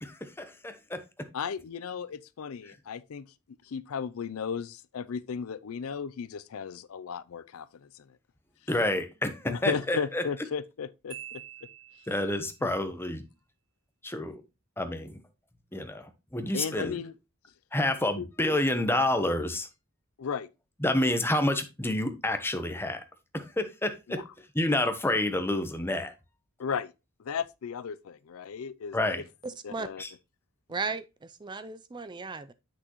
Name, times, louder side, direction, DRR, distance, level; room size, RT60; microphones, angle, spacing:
voice 1, 0.0-1.0 8.7-10.2 12.1-13.2 14.0-14.4 14.8-15.2 15.7-17.0 17.7-19.7 20.8-23.0 23.3-24.2 24.5-26.1 28.9-29.2 30.0-30.1, left 1 dB, 10° left, 0.9 m, -29 dB
voice 2, 1.3-3.3 3.6-8.1 9.5-11.4 12.6-12.7 16.5-17.1 18.2-18.3 20.2-20.5 24.1-24.2 26.6-26.9 27.2-29.2 29.6-30.0, left 6 dB, 75° left, 0.4 m, -35 dB
Marimba xylophone, 11.1-12.5, right 11 dB, 70° right, 1.3 m, -46 dB
voice 3, 29.4-29.9 30.7-32.5, right 4 dB, 20° right, 0.4 m, -36 dB
8.1 x 6.1 x 3.0 m
head